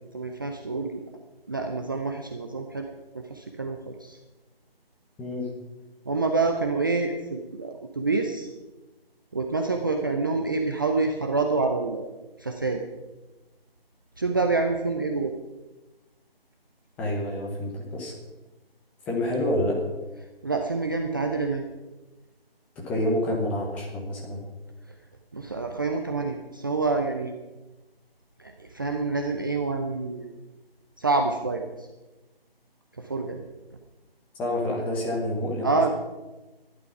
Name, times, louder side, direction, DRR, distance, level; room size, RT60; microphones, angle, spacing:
voice 1, 0.1-1.0 1.5-2.9 3.1-4.2 6.1-8.5 9.3-12.1 12.4-12.8 14.2-15.3 20.4-21.6 25.3-27.3 28.4-30.3 31.0-31.9 33.0-33.4 35.6-35.9, right 3 dB, 20° right, 3 dB, 0.6 m, -27 dB
voice 2, 5.2-5.5 17.0-18.1 19.1-19.8 22.8-24.4 34.4-35.9, left 1 dB, 5° left, -1 dB, 1.0 m, -28 dB
14.0 x 11.5 x 5.8 m, 1.1 s
figure-of-eight pair, 155°, 30 cm